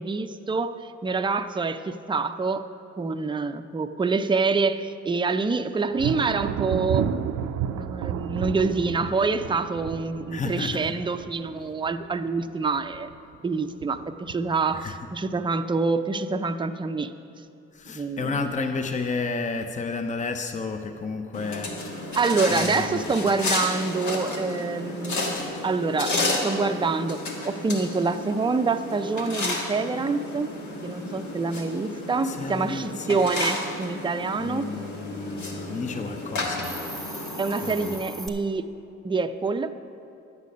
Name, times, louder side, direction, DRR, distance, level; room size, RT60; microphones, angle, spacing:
voice 1, 0.0-2.7 3.0-7.1 7.7-13.1 13.4-17.1 17.9-18.5 22.1-25.3 25.6-27.2 27.4-30.5 30.8-34.7 37.4-38.6 39.0-39.7, right 4 dB, 15° right, 8 dB, 0.5 m, -26 dB
Thunder, 6.0-12.4 12.8-13.4 13.8-14.6, right 9 dB, 75° right, 0.5 m, -31 dB
voice 2, 10.3-11.0 14.7-15.0 17.7-22.2 22.5-23.0 32.2-33.2 34.4-37.3 37.6-37.9, left 4 dB, 25° left, 7 dB, 0.6 m, -32 dB
sound 1, 21.3-38.0, left 2 dB, 75° left, 1.6 m, -32 dB
Hiss, 36.6-38.3, equal, ahead, 1.0 m, -39 dB
10.5 x 8.2 x 5.2 m, 2.7 s
cardioid pair, 70°, 29 cm